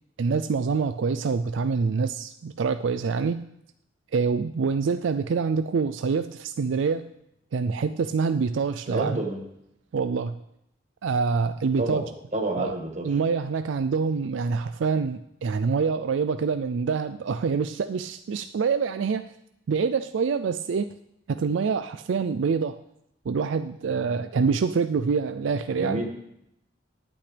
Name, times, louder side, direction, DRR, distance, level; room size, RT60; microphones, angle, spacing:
voice 1, 0.2-3.5 4.1-7.1 7.5-9.2 9.9-10.4 11.0-12.0 12.6-12.7 13.0-19.3 19.7-20.9 21.3-22.8 23.3-26.1, right 5 dB, 80° right, 11 dB, 0.4 m, -26 dB
voice 2, 8.9-9.4 11.8-12.0 12.3-13.1 25.7-26.1, right 2 dB, 40° right, 2 dB, 1.7 m, -28 dB
18.5 x 8.7 x 3.4 m, 0.79 s
head